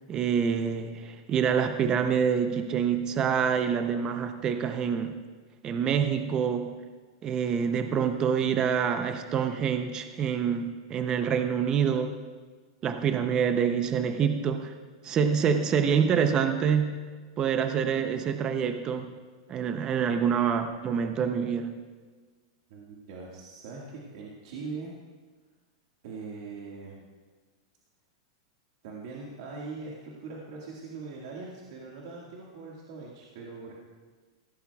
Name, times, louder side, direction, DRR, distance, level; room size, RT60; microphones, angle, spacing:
voice 1, 0.1-5.2 5.6-6.8 7.2-12.2 12.8-14.7 15.0-17.0 17.4-19.1 19.5-21.7, right 7 dB, 25° right, 8 dB, 0.6 m, -26 dB
voice 2, 22.7-24.9 26.0-27.0 28.8-33.8, right 4 dB, 55° right, -4 dB, 1.8 m, -41 dB
16.0 x 13.0 x 2.3 m, 1.4 s
supercardioid pair, 150°, 3 cm